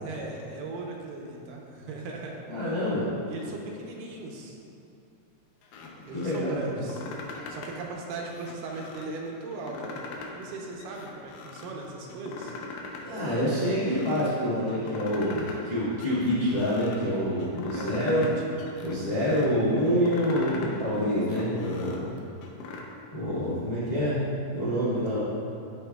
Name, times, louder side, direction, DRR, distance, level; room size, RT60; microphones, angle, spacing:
voice 1, 0.0-2.4 3.3-4.6 6.1-7.1 7.5-10.0 10.3-12.5 17.7-18.3, right 2 dB, 80° right, -1 dB, 2.4 m, -38 dB
voice 2, 2.5-3.0 6.1-6.6 13.0-18.2 18.8-22.1 23.1-24.2 24.5-25.2, equal, 30° left, -12 dB, 0.7 m, -27 dB
sound 1, 5.6-6.4 6.8-7.8 8.2-9.1 9.5-10.5 10.8-11.7 12.1-13.0 13.3-14.3 14.7-15.7 16.0-17.0 17.4-18.3 18.6-19.5 19.9-20.7 21.1-22.8, left 4 dB, 80° left, 2.3 m, -41 dB
12.5 x 5.2 x 2.3 m, 2.6 s
omnidirectional pair, 3.9 m